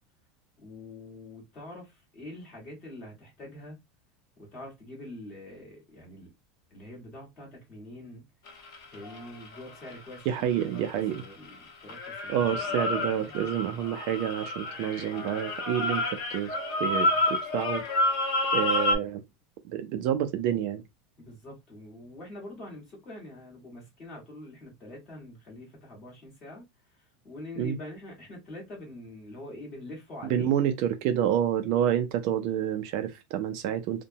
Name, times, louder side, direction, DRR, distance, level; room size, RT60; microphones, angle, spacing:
voice 1, 0.6-3.8 4.4-6.3 6.7-8.2 8.9-12.8 13.1-13.3 17.1-17.2 21.2-30.5, left 1 dB, 25° left, 1.4 m, -45 dB
sound 1, 8.5-11.5 11.9-18.9, left 2 dB, 55° left, 0.9 m, -29 dB
voice 2, 10.3-11.2 12.3-16.1 16.3-17.8 18.5-19.2 19.6-20.8 27.6-27.8 30.3-34.0, right 10 dB, 45° right, 0.3 m, -28 dB
2.8 x 2.1 x 2.6 m
supercardioid pair, 180°, 2 cm